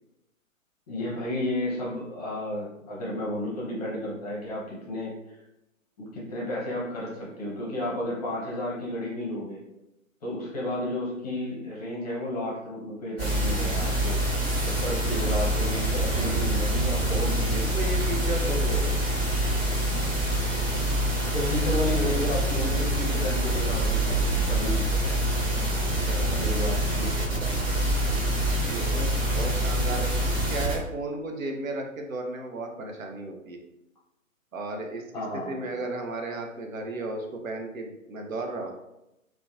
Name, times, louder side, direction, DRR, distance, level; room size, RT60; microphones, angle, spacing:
voice 1, 0.9-5.1 6.0-9.6 10.2-14.2 14.6-17.6 18.4-18.6 21.3-25.2 26.3-27.5 35.1-35.7, left 1 dB, 30° left, -5 dB, 0.7 m, -32 dB
sound 1, 13.2-30.8, right 1 dB, 45° right, 1.3 m, -26 dB
voice 2, 16.1-16.5 17.4-18.9 25.9-26.5 28.6-33.6 34.5-38.7, right 2 dB, 75° right, 2 dB, 0.6 m, -34 dB
2.7 x 2.2 x 2.3 m, 0.89 s
figure-of-eight pair, 125°, 41 cm